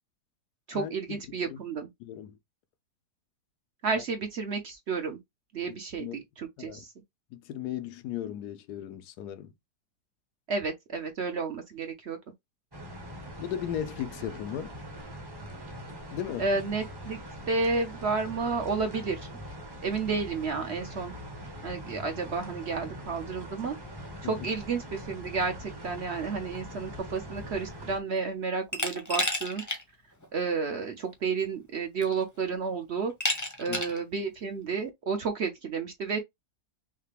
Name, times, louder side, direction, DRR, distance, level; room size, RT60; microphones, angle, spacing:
voice 1, 0.7-1.9 3.8-5.2 5.5-6.9 10.5-12.2 16.4-17.2 17.5-19.3 19.8-21.1 21.6-23.7 24.2-29.6 30.3-33.1 33.6-36.2, right 4 dB, 55° right, 0.8 m, -31 dB
voice 2, 2.0-2.3 4.0-4.1 5.7-6.2 6.6-6.8 7.3-9.5 13.4-14.8 16.1-16.5 24.2-24.5 33.7-33.8, left 10 dB, 80° left, 1.1 m, -36 dB
sound 1, 12.7-28.0, equal, 20° right, 0.7 m, -42 dB
Glass, 28.7-29.8 30.2-30.3 31.4-31.5 32.0-32.4 33.2-34.0, left 1 dB, 15° left, 0.7 m, -31 dB
5.7 x 2.2 x 3.3 m
omnidirectional pair, 1.7 m